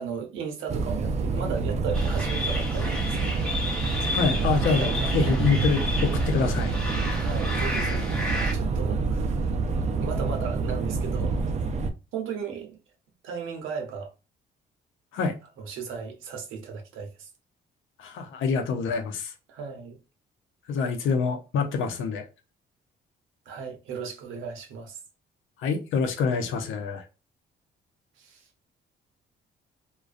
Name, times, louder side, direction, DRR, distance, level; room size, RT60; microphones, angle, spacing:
voice 1, 0.0-3.5 4.0-4.5 4.8-5.4 7.1-8.3 8.5-9.4 9.9-11.4 12.1-12.8 13.2-14.1 15.6-17.3 19.5-20.0 23.5-25.0 28.2-28.5, right 6 dB, 90° right, 0.7 m, -36 dB
sound 1, 0.7-11.9, right 4 dB, 35° right, 0.4 m, -27 dB
sound 2, 1.9-8.5, left 1 dB, 5° left, 0.8 m, -32 dB
voice 2, 4.1-4.9 5.1-6.7 15.1-15.4 18.0-19.3 20.7-22.2 25.6-27.0, left 5 dB, 80° left, 0.6 m, -26 dB
2.4 x 2.2 x 2.4 m
cardioid pair, 90°, 20 cm